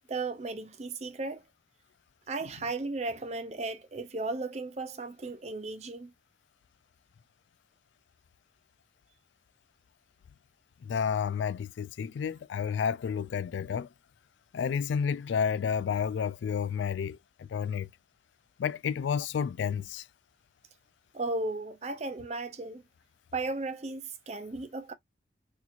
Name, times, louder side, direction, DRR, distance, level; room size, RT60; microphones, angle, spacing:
voice 1, 0.1-1.4 2.3-6.1 21.1-22.8 23.3-24.9, right 3 dB, 35° right, 0.5 m, -35 dB
voice 2, 10.8-13.9 14.5-17.2 17.5-17.9 18.6-20.0, left 7 dB, 75° left, 0.3 m, -30 dB
4.2 x 2.8 x 2.4 m
head